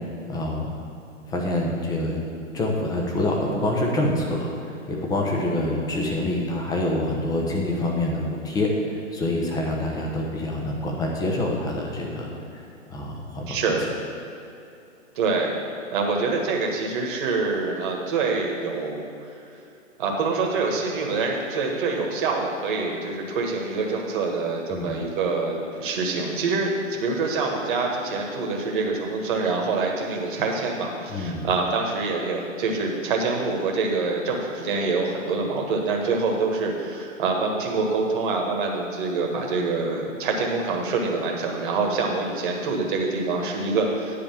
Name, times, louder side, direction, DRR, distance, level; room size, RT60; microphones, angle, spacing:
voice 1, 0.3-0.7 1.3-2.2 2.5-12.3 12.9-13.6 24.7-25.0 31.1-31.5, left 1 dB, 10° left, -1 dB, 1.0 m, -26 dB
voice 2, 13.5-13.8 15.1-15.5 15.9-19.1 20.0-44.2, right 3 dB, 40° right, 0 dB, 1.6 m, -25 dB
10.0 x 4.8 x 7.3 m, 2.7 s
figure-of-eight pair, 125°, 39 cm